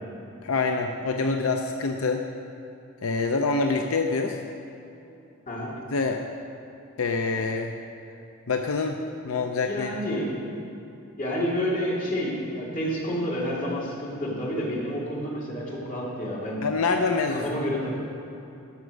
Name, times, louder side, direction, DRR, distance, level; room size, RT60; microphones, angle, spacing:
voice 1, 0.4-2.2 3.0-4.4 5.9-6.2 7.0-7.7 8.5-9.0 9.2-9.9 16.6-17.4, left 4 dB, 80° left, 4 dB, 0.6 m, -25 dB
voice 2, 9.7-10.3 11.2-16.6 17.3-18.0, equal, 40° left, -6 dB, 2.6 m, -29 dB
13.0 x 6.1 x 6.4 m, 2.9 s
head